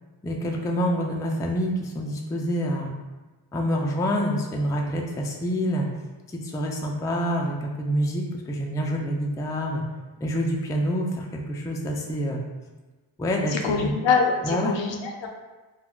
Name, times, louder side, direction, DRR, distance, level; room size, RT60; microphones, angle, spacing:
voice 1, 0.2-2.9 3.5-5.9 6.3-9.8 10.2-12.4 13.2-13.9 14.4-14.7, equal, 10° left, 0 dB, 0.3 m, -27 dB
voice 2, 13.5-15.3, left 5 dB, 70° left, 2 dB, 0.6 m, -24 dB
2.3 x 2.1 x 3.6 m, 1.2 s
cardioid pair, 60°, 47 cm